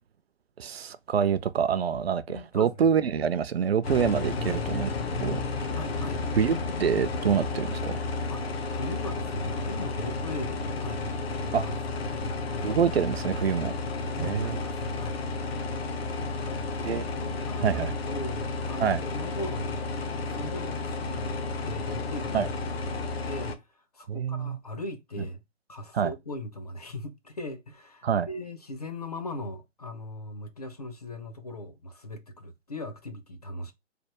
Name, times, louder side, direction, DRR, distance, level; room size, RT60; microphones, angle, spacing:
voice 1, 0.6-4.9 5.2-5.7 6.4-8.0 11.5-11.6 12.6-13.7 14.2-14.6 16.8-17.0 17.6-17.9 18.8-19.0 22.3-22.5 24.1-24.6 25.9-26.1 28.0-28.3, right 7 dB, 55° right, 0.4 m, -26 dB
voice 2, 2.3-2.9 4.5-4.6 5.7-6.2 8.3-11.7 12.1-12.7 14.1-15.2 16.4-17.8 18.1-19.8 20.3-22.9 23.2-25.4 25.7-33.7, left 1 dB, 35° left, 0.4 m, -39 dB
sound 1, 3.8-23.6, left 3 dB, 55° left, 0.8 m, -32 dB
3.3 x 2.2 x 2.9 m
figure-of-eight pair, 140°, 37 cm